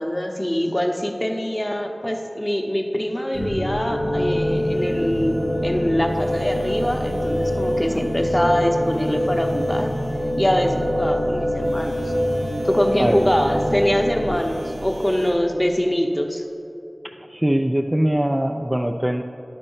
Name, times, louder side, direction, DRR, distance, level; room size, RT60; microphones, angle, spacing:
voice 1, 0.0-9.9 10.4-12.1 12.6-16.4, equal, 20° left, 3 dB, 0.8 m, -23 dB
sound 1, 3.3-15.3, equal, 80° right, 2.1 m, -24 dB
voice 2, 17.0-19.2, right 1 dB, 20° right, 4 dB, 0.3 m, -22 dB
11.0 x 4.2 x 5.5 m, 2.8 s
wide cardioid pair, 50°, 0 cm